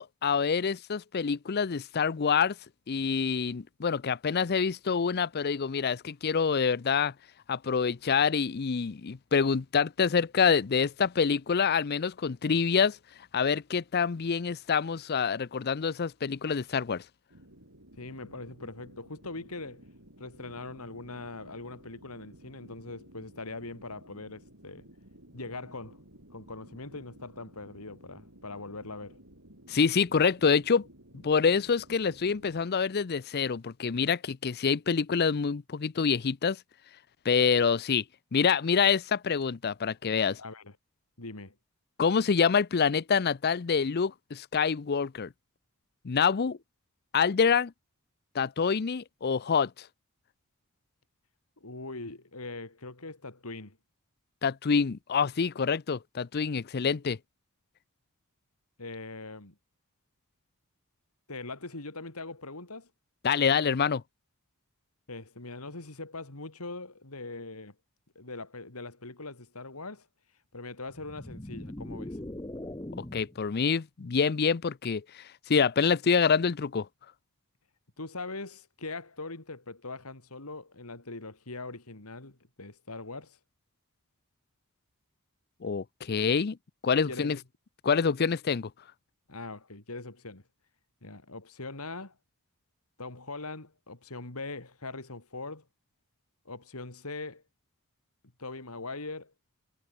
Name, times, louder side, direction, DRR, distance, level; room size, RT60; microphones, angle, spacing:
voice 1, 0.0-2.5 2.9-7.1 7.5-13.0 13.3-17.0 29.7-30.9 31.1-36.6 37.2-38.0 38.3-40.4 42.0-45.3 46.0-46.6 47.1-47.7 48.3-49.7 54.4-57.2 63.2-64.0 73.1-76.9 85.6-86.6 86.8-87.4 87.8-88.7, left 6 dB, 45° left, 0.5 m, -26 dB
sound 1, 17.3-32.7, right 1 dB, 65° right, 7.9 m, -55 dB
voice 2, 18.0-19.8 20.2-24.9 25.3-26.0 26.3-29.2 40.4-40.8 41.2-41.6 51.6-53.8 58.8-59.5 61.3-62.9 65.1-67.7 68.1-70.1 70.5-72.2 78.0-83.4 86.0-86.1 87.1-87.4 89.3-90.4 91.0-92.1 93.0-95.7 96.4-97.4 98.4-99.3, left 3 dB, 80° left, 3.1 m, -41 dB
sound 2, 70.9-73.4, left 1 dB, 20° left, 1.1 m, -40 dB
head